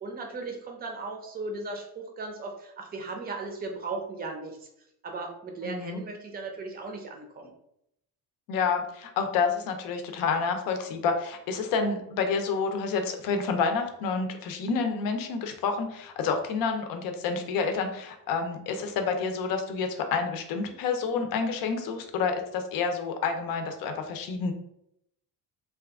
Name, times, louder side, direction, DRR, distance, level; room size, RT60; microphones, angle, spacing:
voice 1, 0.0-4.7 5.0-7.5, right 3 dB, 25° right, 2 dB, 0.5 m, -37 dB
voice 2, 5.6-6.0 8.5-24.5, left 5 dB, 65° left, 6 dB, 0.6 m, -29 dB
2.7 x 2.4 x 3.4 m, 0.77 s
cardioid pair, 160°, 37 cm